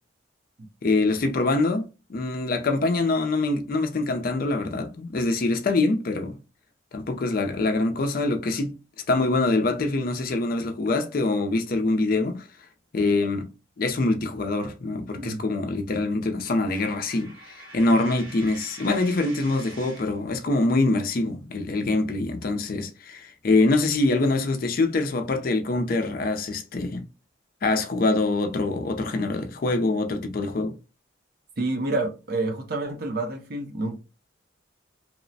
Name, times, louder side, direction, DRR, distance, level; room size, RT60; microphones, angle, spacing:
voice 1, 0.8-1.8 2.1-6.4 6.9-8.7 9.1-12.5 12.9-13.5 13.8-27.0 27.6-30.7, left 2 dB, 45° left, 0.4 m, -24 dB
Coin (dropping), 16.7-20.2, right 2 dB, 85° right, 0.7 m, -45 dB
voice 2, 31.6-34.0, right 2 dB, 50° right, 0.5 m, -28 dB
2.9 x 2.0 x 2.6 m
head